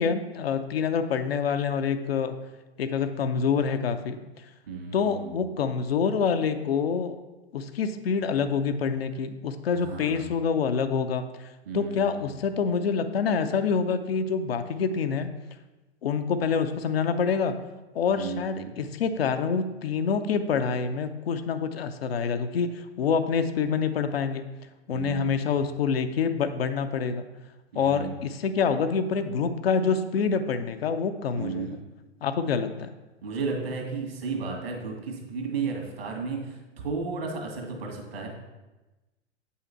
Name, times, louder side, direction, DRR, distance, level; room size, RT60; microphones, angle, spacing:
voice 1, 0.0-2.4 2.8-4.2 4.9-7.2 7.5-11.5 11.7-15.3 16.0-17.6 17.9-24.4 24.9-27.3 27.7-31.8 32.2-32.9, left 6 dB, 60° left, 9 dB, 0.7 m, -26 dB
voice 2, 4.7-5.4 9.8-10.3 11.7-12.2 18.1-18.7 24.9-25.4 27.7-28.2 31.3-31.8 33.2-38.3, right 4 dB, 60° right, 1 dB, 2.0 m, -33 dB
8.4 x 5.6 x 4.3 m, 1.1 s
figure-of-eight pair, 95°, 34 cm